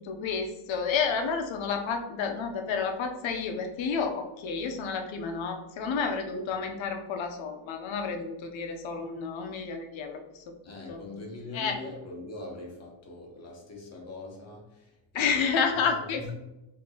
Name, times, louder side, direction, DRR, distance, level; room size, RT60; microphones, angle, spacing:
voice 1, 0.0-10.4 10.9-11.0 11.5-11.7 15.1-16.3, left 5 dB, 70° left, 4 dB, 0.7 m, -30 dB
voice 2, 10.6-16.3, left 2 dB, 35° left, -1 dB, 0.9 m, -42 dB
4.3 x 2.8 x 2.8 m, 0.96 s
cardioid pair, 160°, 48 cm